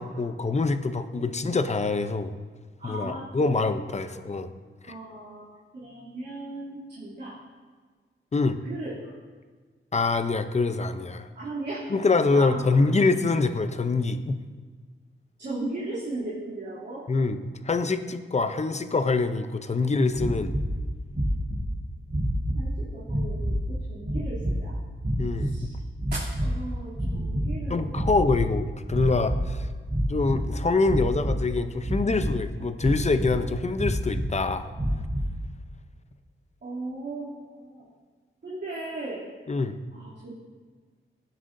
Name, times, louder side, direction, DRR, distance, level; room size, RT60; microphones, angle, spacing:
voice 1, 0.0-2.3 2.8-4.5 8.3-8.6 9.9-11.3 11.9-14.4 17.1-17.4 17.6-20.5 25.2-25.5 27.7-29.7 30.1-34.7 39.5-39.8, left 3 dB, 30° left, 9 dB, 0.6 m, -25 dB
voice 2, 2.8-3.7 4.0-4.2 4.8-5.5 5.7-7.3 8.6-9.2 11.3-11.9 12.3-12.9 15.4-17.0 22.5-24.8 25.3-25.8 26.1-28.1 36.6-37.9 38.4-39.3 39.9-40.3, right 2 dB, 55° right, -11 dB, 2.9 m, -37 dB
sound 1, 20.1-20.7 21.1-21.7 22.1-22.7 23.0-23.6 24.0-24.6 25.0-25.7 25.9-26.6 26.9-27.6 27.9-28.5 28.9-29.5 29.8-30.4 30.8-31.4 31.8-32.4 32.8-33.4 33.8-34.3 34.7-35.3, equal, 30° right, 3.2 m, -28 dB
sound 2, 27.1-30.5 31.0-31.1, right 1 dB, 15° right, 1.4 m, -39 dB
17.0 x 7.5 x 2.6 m, 1.5 s
wide cardioid pair, 130°, 21 cm